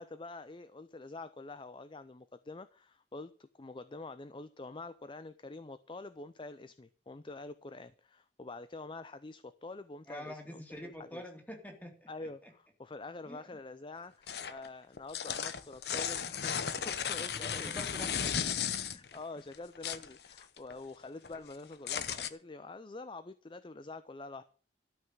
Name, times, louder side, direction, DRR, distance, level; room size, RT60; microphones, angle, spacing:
voice 1, 0.0-11.2 12.1-18.0 18.9-24.4, left 3 dB, 30° left, 0.5 m, -46 dB
voice 2, 10.1-12.5 13.2-13.6 17.3-18.8, left 1 dB, 10° left, 2.5 m, -47 dB
sound 1, 14.3-14.7 15.0-19.2 19.5-20.8 21.0-22.3, left 8 dB, 65° left, 0.9 m, -35 dB
13.0 x 5.7 x 9.0 m
head